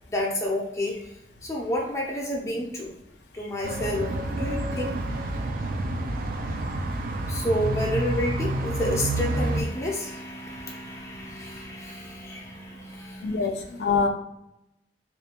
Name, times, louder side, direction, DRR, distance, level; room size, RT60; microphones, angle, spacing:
voice 1, 0.1-1.1 1.4-2.9 3.3-5.0 7.3-13.5, left 1 dB, 15° left, -3 dB, 0.5 m, -30 dB
sound 1, 3.6-9.6, right 1 dB, 50° right, 0.3 m, -28 dB
voice 2, 13.2-14.1, left 4 dB, 80° left, 3 dB, 0.4 m, -24 dB
2.4 x 2.2 x 2.8 m, 0.84 s
head